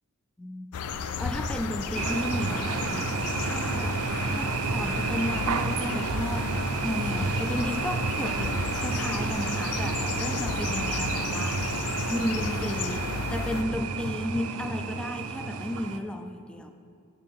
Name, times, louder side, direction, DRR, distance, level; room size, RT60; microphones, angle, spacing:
voice 1, 0.4-16.7, left 1 dB, 5° left, 7 dB, 0.3 m, -34 dB
sound 1, 0.7-13.6, left 6 dB, 80° left, 0.4 m, -34 dB
sound 2, 1.9-16.0, right 4 dB, 80° right, 0.5 m, -30 dB
8.4 x 7.5 x 3.5 m, 2.5 s
head